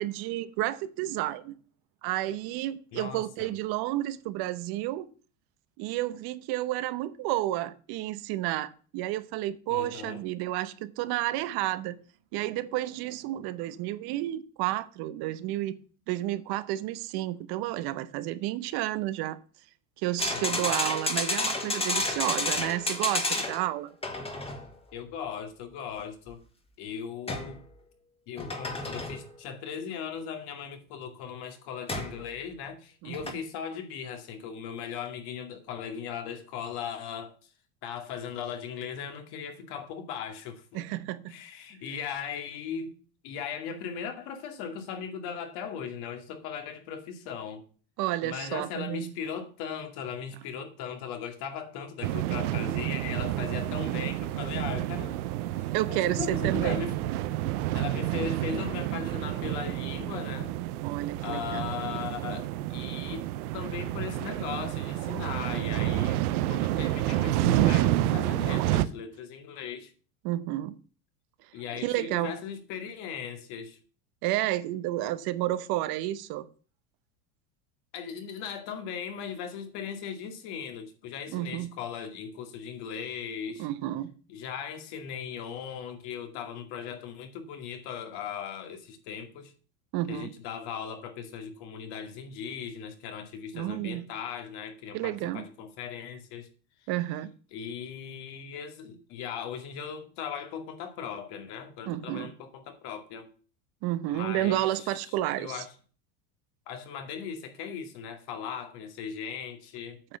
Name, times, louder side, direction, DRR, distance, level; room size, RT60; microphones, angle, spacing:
voice 1, 0.0-1.6 2.0-5.1 5.8-12.0 12.3-15.7 16.1-19.4 20.0-23.9 33.0-33.2 40.7-41.4 48.0-49.1 55.7-56.8 60.8-61.7 70.2-70.8 71.8-72.3 74.2-76.5 81.3-81.7 83.6-84.1 89.9-90.3 93.5-94.0 94.9-95.5 96.9-97.3 101.9-102.3 103.8-105.6 110.1-110.2, right 15 dB, 55° right, 0.9 m, -31 dB
voice 2, 2.9-3.5 9.7-10.2 20.3-20.8 24.9-26.4 26.8-27.6 28.3-37.5 37.8-40.8 41.3-43.0 43.2-47.6 48.2-55.2 55.6-56.9 57.7-60.5 61.2-63.3 63.5-66.2 66.5-69.9 71.5-73.8 77.9-83.7 84.3-89.5 90.1-96.5 97.5-103.3 104.1-105.7 106.7-110.0, left 7 dB, 60° left, 2.3 m, -38 dB
sound 1, 20.2-23.7 24.0-24.7 27.3-27.6 28.4-29.3 31.9-32.2 33.1-33.3, left 2 dB, 15° left, 1.8 m, -30 dB
sound 2, 52.0-68.9, right 14 dB, 80° right, 0.8 m, -29 dB
8.8 x 6.1 x 6.9 m
supercardioid pair, 115°, 44 cm